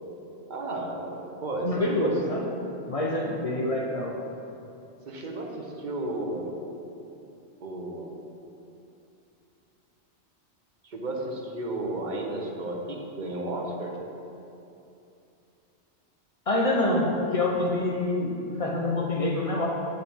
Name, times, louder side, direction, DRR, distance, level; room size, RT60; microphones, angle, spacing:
voice 1, 0.5-2.2 5.1-6.5 7.6-8.1 10.8-14.0, right 2 dB, 45° right, 0 dB, 0.9 m, -33 dB
voice 2, 1.6-2.5 2.9-4.2 16.5-19.7, left 2 dB, 40° left, -1 dB, 0.5 m, -26 dB
7.1 x 5.7 x 3.5 m, 2.8 s
omnidirectional pair, 1.2 m